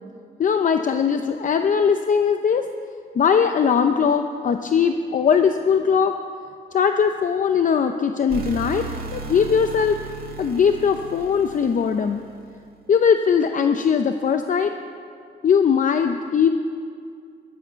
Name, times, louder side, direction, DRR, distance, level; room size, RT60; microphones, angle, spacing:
voice 1, 0.4-2.7 3.1-6.1 6.7-8.8 9.1-10.0 10.4-12.2 12.9-14.7 15.4-16.5, left 6 dB, 45° left, 7 dB, 0.6 m, -20 dB
sound 1, 8.3-12.5, right 4 dB, 50° right, 2.3 m, -35 dB
20.0 x 12.0 x 5.7 m, 2.3 s
wide cardioid pair, 145°, 19 cm